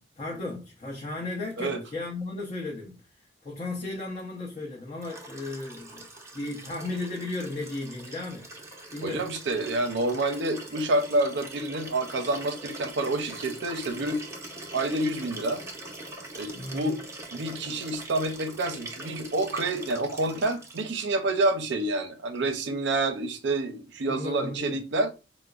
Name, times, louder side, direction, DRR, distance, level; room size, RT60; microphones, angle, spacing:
voice 1, 0.0-3.0 3.4-6.1 6.3-8.5 8.9-9.3 16.5-16.9 24.1-24.8, left 2 dB, 35° left, 0.7 m, -35 dB
Liquid, 5.0-21.1 22.3-22.4, right 2 dB, 15° right, 0.6 m, -43 dB
voice 2, 9.0-14.3 14.7-15.6 16.3-17.0 17.3-25.1, right 2 dB, 65° right, 0.5 m, -28 dB
4.8 x 2.0 x 2.3 m
head